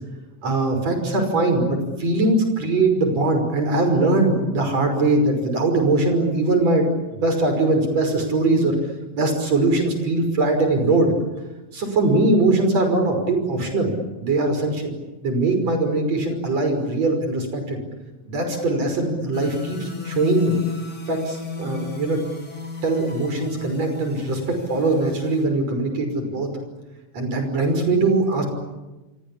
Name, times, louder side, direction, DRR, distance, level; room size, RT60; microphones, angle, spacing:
voice 1, 0.4-6.9 7.2-8.7 9.1-11.1 11.7-14.9 15.2-17.8 18.3-20.6 21.1-22.2 22.8-24.4 24.7-26.5 27.1-28.5, right 2 dB, 60° right, 6 dB, 6.7 m, -21 dB
sound 1, 19.3-25.4, left 6 dB, 30° left, 4.3 m, -34 dB
29.0 x 24.0 x 8.7 m, 1.1 s
omnidirectional pair, 3.3 m